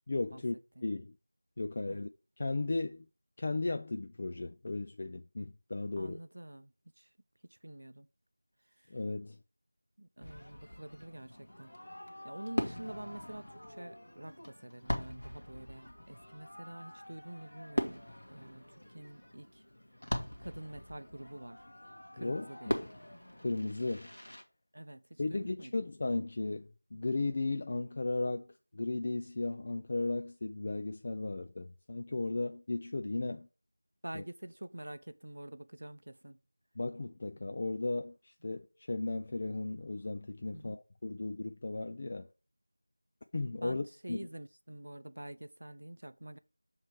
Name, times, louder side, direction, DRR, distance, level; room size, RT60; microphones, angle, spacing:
voice 1, 0.1-0.6 0.8-1.1 1.6-2.1 2.4-3.1 3.4-6.2 8.9-9.4 22.2-22.7 23.4-24.1 25.2-28.5 28.7-33.5 34.1-34.2 36.8-42.3 43.3-44.3, left 2 dB, 25° left, 0.3 m, -35 dB
voice 2, 6.0-7.1 7.6-8.1 8.8-8.9 10.0-11.8 12.2-19.6 20.4-21.6 22.1-22.8 24.7-25.8 34.0-36.4 40.5-40.8 43.6-46.4, right 1 dB, 60° right, 0.6 m, -47 dB
Fireworks, 10.2-24.4, equal, 60° left, 1.5 m, -41 dB
7.1 x 3.1 x 4.8 m
figure-of-eight pair, 175°, 0 cm